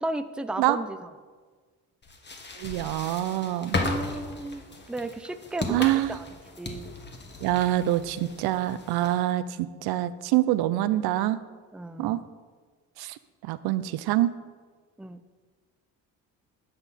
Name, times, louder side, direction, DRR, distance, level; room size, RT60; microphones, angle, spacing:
voice 1, 0.0-1.1 3.8-6.3 6.6-6.9 11.7-12.2 15.0-15.2, right 1 dB, 5° right, 10 dB, 0.5 m, -34 dB
sound 1, 2.0-9.3, left 2 dB, 30° left, 1.5 m, -36 dB
voice 2, 2.6-3.8 5.7-6.2 7.4-11.4 12.0-12.2 13.0-13.1 13.4-14.3, right 14 dB, 80° right, 14 dB, 0.6 m, -25 dB
10.5 x 6.9 x 4.2 m, 1.5 s
supercardioid pair, 80°, 37 cm